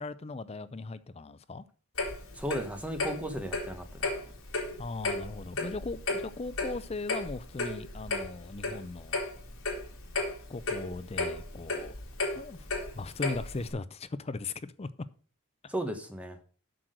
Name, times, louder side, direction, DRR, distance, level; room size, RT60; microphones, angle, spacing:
voice 1, 0.0-1.6 4.8-9.2 10.5-11.9 12.4-12.7 12.9-14.9 15.6-15.7, left 3 dB, 25° left, 0.5 m, -38 dB
Clock, 2.0-13.7, left 3 dB, 65° left, 3.4 m, -34 dB
voice 2, 2.3-3.9 15.7-16.4, right 1 dB, 5° right, 1.1 m, -35 dB
7.9 x 6.2 x 6.3 m
head